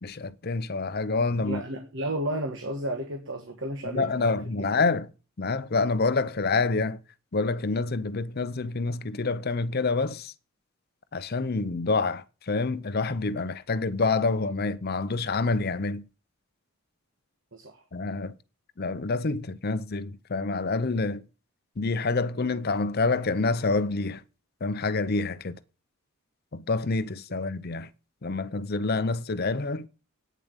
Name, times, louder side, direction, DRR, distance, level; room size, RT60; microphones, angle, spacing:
voice 1, 0.0-1.6 3.8-5.1 5.4-7.0 7.3-10.3 11.1-16.0 17.9-18.4 18.8-21.2 21.8-24.2 24.6-25.6 26.5-27.9 28.2-29.9, left 3 dB, 45° left, 0.7 m, -27 dB
voice 2, 1.4-4.2 17.5-17.8, right 1 dB, 55° right, 1.6 m, -32 dB
9.3 x 7.2 x 8.1 m
head